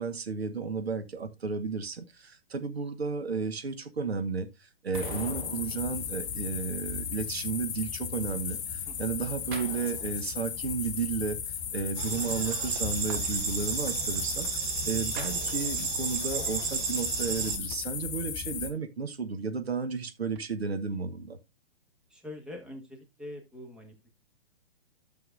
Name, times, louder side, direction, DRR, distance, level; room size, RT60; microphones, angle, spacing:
voice 1, 0.0-21.4, right 5 dB, 75° right, 1.1 m, -33 dB
sound 1, 1.1-1.9 4.9-6.8 9.5-11.0 15.2-16.5 17.7-18.9 20.3-20.4, right 6 dB, 55° right, 1.3 m, -46 dB
sound 2, 4.9-18.7, left 8 dB, 30° left, 1.1 m, -36 dB
voice 2, 8.8-9.2 22.1-24.1, left 1 dB, 5° right, 1.5 m, -44 dB
sound 3, 12.0-17.6, right 7 dB, 25° right, 1.1 m, -33 dB
11.5 x 6.9 x 2.5 m
figure-of-eight pair, 120°, 32 cm